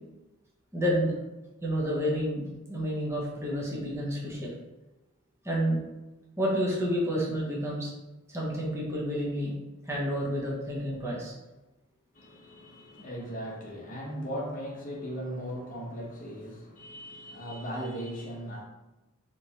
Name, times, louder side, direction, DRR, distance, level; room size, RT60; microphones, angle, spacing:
voice 1, 0.7-1.1 1.6-4.5 5.4-5.8 6.4-7.9 8.3-9.5 9.8-11.3, equal, 10° right, -4 dB, 0.6 m, -29 dB
voice 2, 12.1-18.6, equal, 35° left, -1 dB, 0.7 m, -38 dB
3.3 x 3.0 x 2.7 m, 1.0 s
head